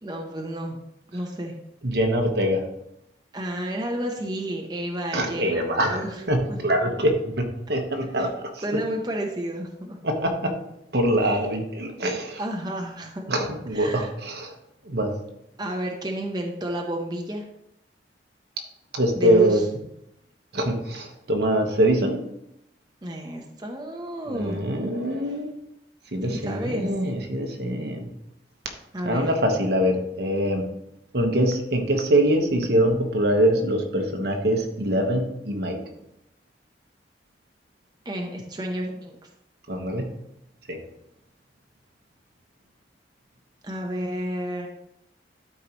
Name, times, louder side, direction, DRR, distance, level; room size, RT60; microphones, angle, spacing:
voice 1, 0.0-0.8 1.1-1.5 3.3-6.1 6.5-6.6 8.2-8.3 8.6-10.0 11.2-11.4 12.4-13.3 13.7-14.1 15.6-17.5 19.1-19.6 23.0-24.6 26.3-26.9 28.9-29.3 38.0-39.3 43.6-44.7, right 1 dB, 25° right, 1 dB, 0.9 m, -31 dB
voice 2, 1.8-2.6 5.1-8.6 10.0-10.5 10.9-12.4 13.3-14.5 14.8-15.2 18.9-19.6 20.5-22.2 24.3-25.5 26.1-28.1 29.0-30.6 31.1-35.8 39.7-40.1 40.7-40.8, right 1 dB, 65° right, 3 dB, 1.2 m, -24 dB
12.5 x 4.7 x 3.0 m, 0.80 s
head